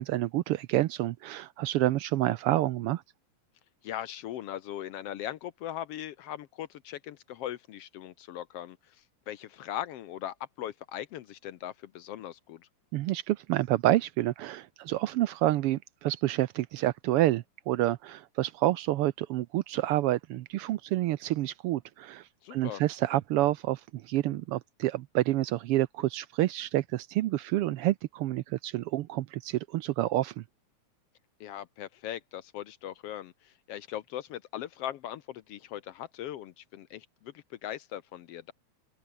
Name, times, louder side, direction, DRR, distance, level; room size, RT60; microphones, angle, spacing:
voice 1, 0.0-3.0 12.9-30.4, right 15 dB, 85° right, 1.2 m, -28 dB
voice 2, 3.8-9.0 9.3-12.7 22.4-22.8 31.4-38.5, left 11 dB, 70° left, 1.6 m, -39 dB
open air
omnidirectional pair, 3.4 m